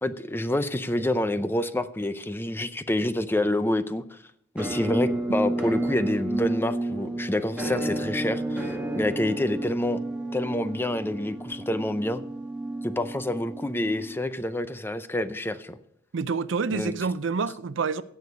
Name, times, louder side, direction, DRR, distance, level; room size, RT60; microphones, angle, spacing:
voice 1, 0.0-4.2 4.5-10.0 10.3-12.2 12.8-15.8 16.7-16.9, left 1 dB, 10° left, 0.5 m, -27 dB
Musical instrument, 4.6-14.4, right 1 dB, 5° right, 1.8 m, -31 dB
voice 2, 16.1-18.0, right 5 dB, 75° right, 0.5 m, -27 dB
16.5 x 6.5 x 5.2 m
head